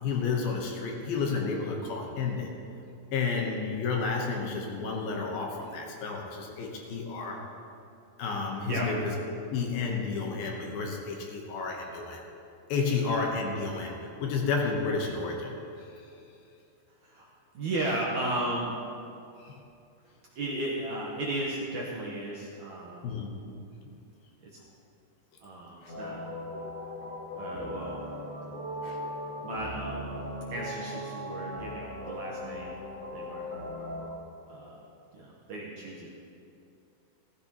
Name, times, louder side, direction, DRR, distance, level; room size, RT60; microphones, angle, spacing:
voice 1, 0.0-2.5 3.1-7.4 8.2-9.1 9.5-12.2 12.7-15.5 19.4-19.5 23.0-23.3 28.8-29.0, left 4 dB, 70° left, 0 dB, 2.7 m, -31 dB
voice 2, 17.5-18.8 20.4-23.1 24.4-24.6 25.4-26.2 27.4-28.0 29.4-30.1 30.5-32.7 33.1-33.5 34.5-34.8 35.1-36.1, right 1 dB, 65° right, -4 dB, 2.0 m, -35 dB
sound 1, 25.9-34.1, left 1 dB, 30° left, 2.2 m, -38 dB
15.5 x 15.0 x 3.0 m, 2.7 s
omnidirectional pair, 4.7 m